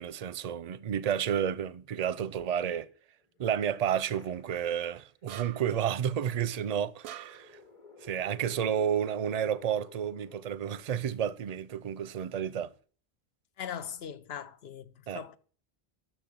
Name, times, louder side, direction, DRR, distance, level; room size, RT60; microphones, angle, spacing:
voice 1, 0.0-2.9 3.4-7.6 8.0-12.7 15.1-15.2, right 9 dB, 50° right, 0.5 m, -31 dB
sound 1, 3.2-4.9 5.3-5.4 6.7-11.5, left 4 dB, 30° left, 1.1 m, -54 dB
sound 2, 5.3-5.8 7.0-7.6, right 11 dB, 90° right, 0.9 m, -44 dB
voice 2, 13.6-15.4, left 8 dB, 80° left, 0.9 m, -40 dB
10.0 x 6.4 x 6.1 m
omnidirectional pair, 1.1 m